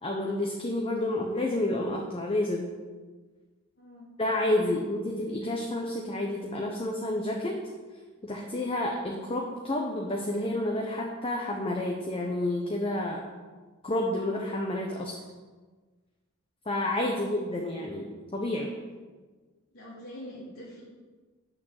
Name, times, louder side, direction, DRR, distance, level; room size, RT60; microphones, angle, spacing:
voice 1, 0.0-2.7 4.2-7.6 8.2-13.2 13.8-15.2 16.7-18.7, left 1 dB, 25° left, 0 dB, 1.0 m, -30 dB
voice 2, 19.7-20.8, equal, 85° left, -8 dB, 2.7 m, -45 dB
8.8 x 6.6 x 6.5 m, 1.4 s
head